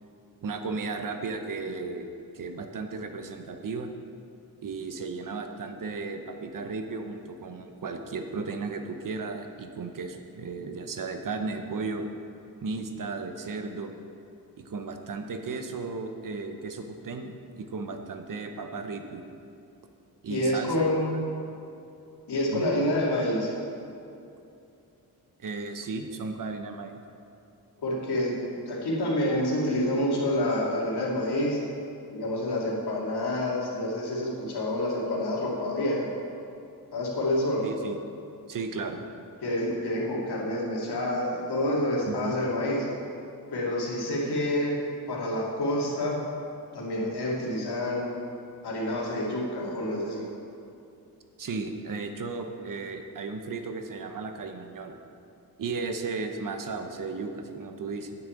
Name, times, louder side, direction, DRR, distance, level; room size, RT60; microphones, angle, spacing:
voice 1, 0.4-2.1 2.3-3.9 4.6-12.1 12.6-13.9 14.6-19.2 20.2-20.8 22.5-22.7 25.4-27.0 37.6-38.0 38.5-39.1 42.1-42.4 51.4-55.0 55.6-58.2, right 4 dB, 55° right, 6 dB, 1.0 m, -35 dB
voice 2, 20.3-21.2 22.3-23.5 27.8-31.6 32.1-36.1 36.9-37.6 39.4-42.9 43.5-44.7 45.1-46.2 46.7-48.1 48.6-50.3, left 1 dB, 85° left, -4 dB, 2.6 m, -28 dB
9.0 x 6.4 x 8.5 m, 2.7 s
wide cardioid pair, 145°, 38 cm